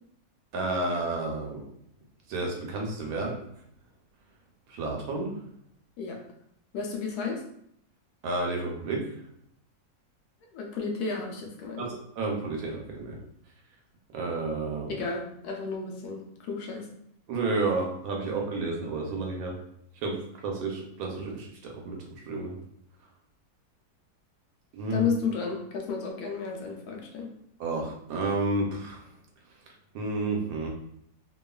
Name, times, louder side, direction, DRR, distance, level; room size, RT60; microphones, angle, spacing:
voice 1, 0.5-1.6 2.3-3.4 4.7-5.3 8.2-9.1 11.8-13.2 14.1-15.0 17.3-19.5 20.0-20.2 20.4-22.6 24.7-25.1 27.6-29.0 29.9-30.7, right 3 dB, 75° right, 1 dB, 1.0 m, -31 dB
voice 2, 6.7-7.4 10.5-11.9 14.9-16.9 24.9-27.3, left 5 dB, 80° left, 1 dB, 1.1 m, -32 dB
2.9 x 2.3 x 2.2 m, 0.72 s
omnidirectional pair, 1.7 m